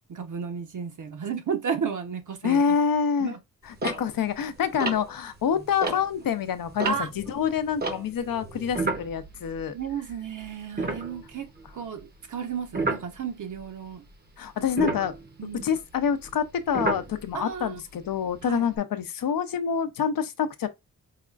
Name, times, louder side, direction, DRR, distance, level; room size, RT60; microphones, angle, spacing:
voice 1, 0.1-2.6 3.2-3.4 6.8-7.1 9.7-11.5 11.7-14.0 15.4-15.6 17.3-17.8 18.5-18.6, right 6 dB, 60° right, 0.9 m, -33 dB
voice 2, 2.4-3.3 3.7-9.7 14.4-15.1 15.6-20.7, left 7 dB, 75° left, 0.6 m, -27 dB
sound 1, 3.8-6.3 6.7-10.1 10.4-10.5 10.8-11.6 12.7-13.1 14.7-17.5 18.2-18.8, right 3 dB, 30° right, 0.7 m, -32 dB
4.8 x 2.4 x 2.3 m
wide cardioid pair, 155°, 35 cm